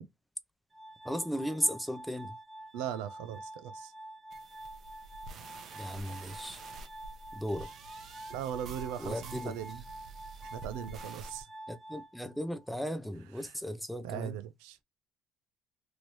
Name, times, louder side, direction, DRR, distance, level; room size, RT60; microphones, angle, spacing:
Glass, 0.7-12.7, right 1 dB, 25° right, 0.9 m, -48 dB
voice 1, 1.0-2.3 5.8-6.6 7.3-7.7 9.0-9.5 11.7-14.4, equal, ahead, 0.6 m, -35 dB
voice 2, 2.7-3.9 8.3-9.8 10.5-11.5 13.4-13.5 14.0-14.8, right 10 dB, 80° right, 0.4 m, -39 dB
sound 1, 4.3-11.4, right 4 dB, 55° right, 0.8 m, -48 dB
3.1 x 2.6 x 3.1 m
supercardioid pair, 85°, 0 cm